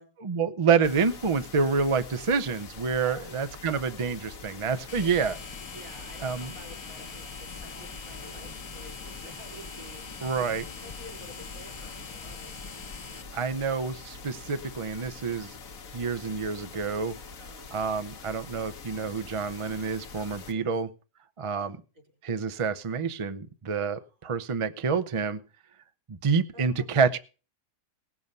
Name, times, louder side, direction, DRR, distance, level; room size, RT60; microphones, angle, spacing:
voice 1, 0.2-5.4 6.2-6.5 10.2-10.7 13.3-15.5 15.9-17.2 17.7-20.9 21.4-21.8 22.2-25.4 26.1-27.2, right 5 dB, 40° right, 11 dB, 0.5 m, -28 dB
sound 1, 0.8-20.5, left 5 dB, 70° left, 1.5 m, -45 dB
voice 2, 3.0-3.4 5.0-5.3 5.7-12.5 17.4-17.7 20.5-20.7 21.6-21.7 24.0-24.4 26.5-27.1, right 1 dB, 70° right, 2 dB, 4.9 m, -49 dB
sound 2, 4.9-13.2, left 4 dB, 35° left, 0.4 m, -43 dB
18.0 x 7.1 x 5.4 m, 0.35 s
omnidirectional pair, 1.5 m